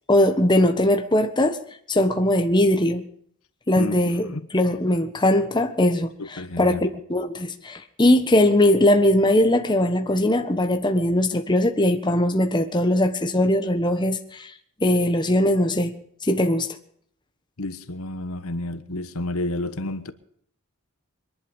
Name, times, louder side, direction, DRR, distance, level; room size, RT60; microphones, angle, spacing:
voice 1, 0.1-1.6 1.9-3.0 3.7-4.3 4.5-6.7 7.1-14.5 14.8-15.9 16.2-16.7, left 1 dB, 20° left, 1.3 m, -20 dB
voice 2, 3.8-4.4 6.2-6.8 17.6-20.1, left 2 dB, 70° left, 1.3 m, -30 dB
22.5 x 11.0 x 5.4 m
head